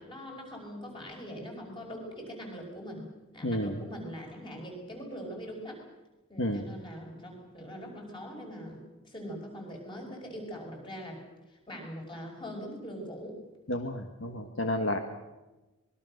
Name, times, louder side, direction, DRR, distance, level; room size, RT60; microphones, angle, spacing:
voice 1, 0.0-3.1 3.3-5.8 6.3-11.2 11.5-13.4 14.4-14.5, equal, 20° left, 1 dB, 6.0 m, -42 dB
voice 2, 3.4-3.8 6.4-6.6 13.7-15.0, left 1 dB, 60° left, 5 dB, 1.6 m, -31 dB
25.5 x 21.5 x 6.6 m, 1.1 s
head